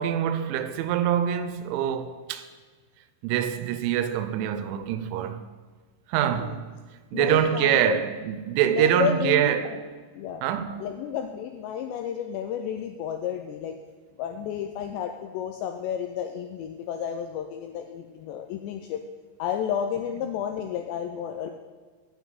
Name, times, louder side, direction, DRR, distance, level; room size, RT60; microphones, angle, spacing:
voice 1, 0.0-2.5 3.2-5.4 6.1-6.6 7.1-9.8 10.4-10.9, right 10 dB, 85° right, 3.0 m, -25 dB
voice 2, 6.2-6.6 7.1-8.0 8.7-9.8 10.1-10.4 10.8-13.8 14.2-19.0 19.4-21.5, left 9 dB, 85° left, 2.5 m, -31 dB
9.2 x 9.0 x 4.0 m
omnidirectional pair, 5.4 m